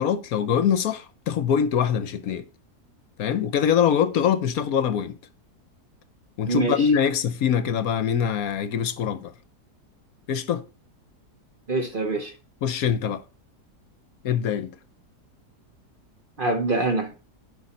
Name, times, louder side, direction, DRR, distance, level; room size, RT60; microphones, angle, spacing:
voice 1, 0.0-2.5 3.2-5.2 6.4-9.3 10.3-10.6 12.6-13.2 14.2-14.7, left 8 dB, 65° left, 1.1 m, -23 dB
voice 2, 6.5-6.9 11.7-12.3 16.4-17.1, right 3 dB, 40° right, 0.9 m, -25 dB
11.0 x 5.2 x 4.1 m
omnidirectional pair, 1.7 m